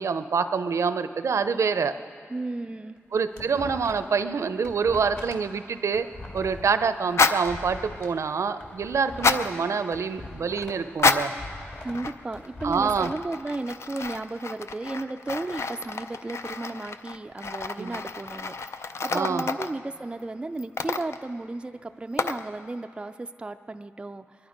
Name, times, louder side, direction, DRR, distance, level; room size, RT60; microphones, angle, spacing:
voice 1, 0.0-1.9 3.1-6.1 6.3-11.3 12.6-13.1 17.8-18.0 19.1-19.5, right 5 dB, 75° right, 11 dB, 0.5 m, -26 dB
voice 2, 2.3-3.0 11.8-24.5, right 2 dB, 20° right, 8 dB, 0.3 m, -34 dB
sound 1, 3.0-4.2 4.5-8.1 8.5-10.9 11.1-13.2, left 2 dB, 45° left, 2.0 m, -42 dB
sound 2, 7.1-7.5 9.1-9.5 10.9-11.4 11.9-12.5 12.7-19.8 20.6-21.3 22.2-22.5, left 4 dB, 60° left, 0.5 m, -28 dB
22.5 x 11.5 x 5.1 m, 2.2 s
wide cardioid pair, 110°, 5 cm